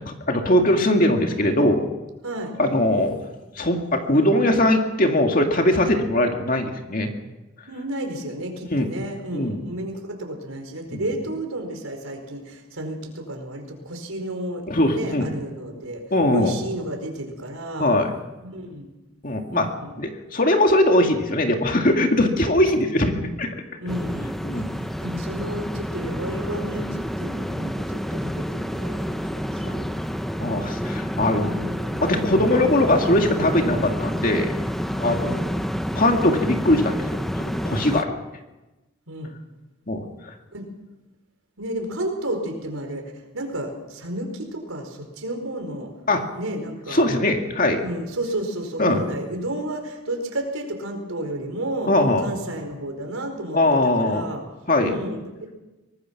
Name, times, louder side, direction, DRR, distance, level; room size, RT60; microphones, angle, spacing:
voice 1, 0.3-1.9 2.6-3.2 3.6-7.1 8.7-8.9 9.3-9.6 10.9-11.0 14.7-15.3 16.1-16.5 17.8-18.1 19.2-19.7 20.0-23.6 24.4-24.8 30.4-31.5 32.0-34.5 35.0-35.4 35.9-38.2 39.9-40.0 46.1-46.2 46.9-47.8 48.8-49.0 51.9-52.2 53.5-54.3 54.7-54.9, left 1 dB, 40° left, 4 dB, 2.2 m, -20 dB
voice 2, 7.7-16.0 16.3-17.9 18.4-18.9 19.5-20.0 23.8-29.9 31.4-32.0 35.2-35.4 39.1-39.3 40.5-40.7 41.6-43.0 43.3-45.9 46.4-47.0 47.8-51.9 52.2-53.6 54.0-54.4 54.8-55.5, right 1 dB, 80° right, 4 dB, 4.8 m, -32 dB
sound 1, 23.9-38.0, equal, ahead, 0.7 m, -28 dB
24.0 x 19.0 x 6.0 m, 1.1 s
head